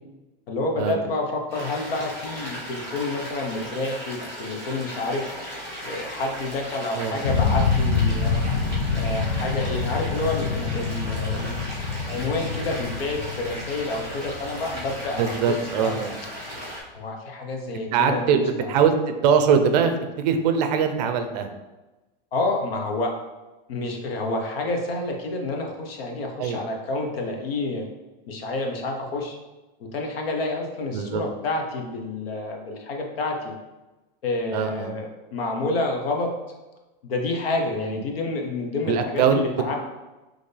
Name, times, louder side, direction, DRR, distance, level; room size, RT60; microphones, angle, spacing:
voice 1, 0.5-5.4 5.8-8.5 8.9-11.6 12.1-16.0 16.9-18.7 22.3-23.1 23.7-27.8 28.3-29.4 29.8-33.5 34.2-36.3 37.0-39.7, left 2 dB, 85° left, 2 dB, 1.0 m, -29 dB
sound 1, 1.5-16.8, equal, 10° left, 1.3 m, -36 dB
voice 2, 6.9-7.4 15.2-16.1 17.9-18.9 19.2-21.5 26.4-26.6 30.9-31.2 34.5-34.9 37.8-38.0 38.9-39.4, right 6 dB, 45° right, 7 dB, 0.5 m, -22 dB
sound 2, 7.2-16.1, left 5 dB, 45° left, 0.5 m, -26 dB
4.4 x 3.1 x 3.3 m, 1.1 s
supercardioid pair, 165°, 29 cm